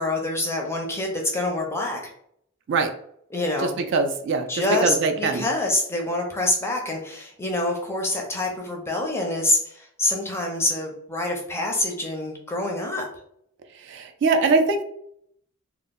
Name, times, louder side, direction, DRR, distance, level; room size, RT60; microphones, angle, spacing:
voice 1, 0.0-2.1 3.3-3.8 4.5-13.1, left 2 dB, 10° left, 1 dB, 0.4 m, -26 dB
voice 2, 3.9-5.4 13.8-14.8, right 4 dB, 55° right, 6 dB, 0.3 m, -22 dB
2.0 x 2.0 x 3.5 m, 0.68 s
head